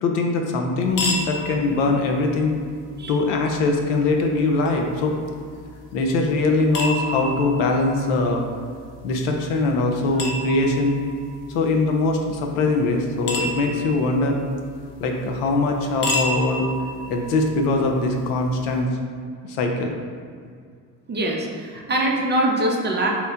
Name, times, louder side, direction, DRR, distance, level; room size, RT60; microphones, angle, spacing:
voice 1, 0.0-2.6 3.1-5.2 5.9-8.4 9.0-11.0 11.5-14.4 15.0-16.7 17.1-18.9 19.5-19.9, left 3 dB, 80° left, 3 dB, 0.5 m, -22 dB
sound 1, 0.9-18.8, left 1 dB, 45° left, 0.7 m, -33 dB
voice 2, 21.1-23.1, right 1 dB, 25° right, 0 dB, 0.4 m, -23 dB
2.9 x 2.0 x 3.6 m, 2.1 s
hypercardioid pair, 60°, 46 cm